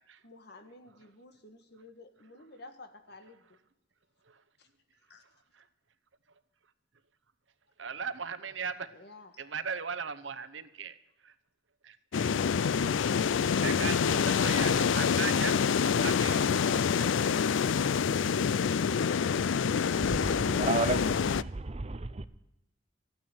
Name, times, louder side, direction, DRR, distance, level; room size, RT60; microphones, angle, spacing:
voice 1, 0.2-3.4 4.6-4.7 5.1-5.2 8.9-9.3, left 2 dB, 60° left, 1.7 m, -52 dB
voice 2, 7.8-9.0 9.4-11.3 11.8-12.5 13.4-17.1, right 6 dB, 80° right, 0.9 m, -39 dB
sound 1, 12.1-21.4, left 6 dB, 80° left, 0.4 m, -27 dB
voice 3, 20.0-22.3, right 3 dB, 35° right, 0.7 m, -33 dB
14.0 x 9.3 x 8.8 m
head